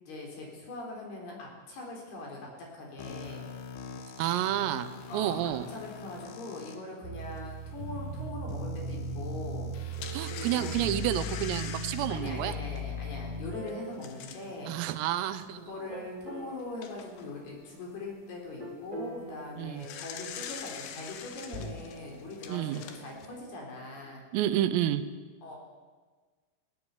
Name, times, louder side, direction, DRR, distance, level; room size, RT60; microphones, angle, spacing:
voice 1, 0.1-3.4 5.1-9.7 10.3-10.8 12.1-14.7 15.6-24.2 25.4-25.6, left 2 dB, 55° left, -1 dB, 5.7 m, -41 dB
sound 1, 3.0-6.8 7.5-7.6 8.5-11.0, left 7 dB, 85° left, 4.6 m, -43 dB
voice 2, 4.2-5.7 10.1-12.6 14.7-15.6 19.6-19.8 22.5-22.8 24.3-25.0, right 12 dB, 85° right, 12 dB, 3.7 m, -30 dB
sound 2, 7.0-15.3 15.9-16.8 18.6-20.3 21.4-24.0, right 1 dB, 20° right, 1.4 m, -40 dB
sound 3, 7.4-7.5 8.0-8.1 9.6-14.6 15.2-15.3 15.7-15.8 16.4-17.3 19.5-23.3, left 8 dB, 70° left, 3.7 m, -44 dB
18.5 x 17.5 x 9.7 m, 1.4 s
omnidirectional pair, 5.8 m